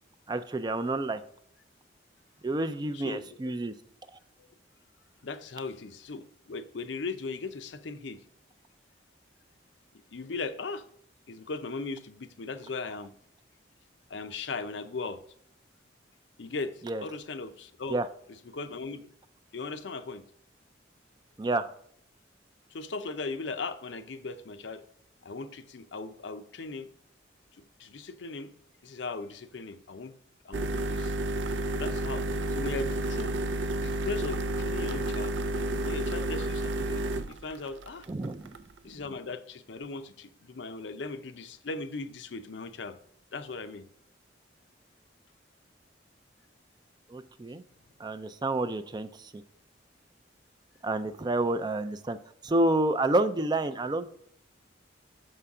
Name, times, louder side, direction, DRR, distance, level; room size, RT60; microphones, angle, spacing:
voice 1, 0.3-1.2 2.4-3.7 16.8-17.0 17.9-18.1 21.4-21.7 38.1-38.5 47.1-47.6 48.0-49.4 50.8-52.2 52.4-54.1, right 2 dB, 20° right, 0.4 m, -29 dB
voice 2, 2.9-3.5 5.2-8.2 10.1-10.8 11.3-13.1 14.1-15.2 16.4-18.0 18.5-19.1 19.5-20.2 22.7-24.8 25.2-26.9 27.8-28.5 28.8-30.1 30.4-31.1 31.7-35.3 35.8-38.0 38.8-43.0 43.3-43.8, left 3 dB, 75° left, 0.6 m, -38 dB
sound 1, 30.5-38.8, right 1 dB, 80° right, 0.5 m, -31 dB
6.7 x 5.5 x 3.6 m
head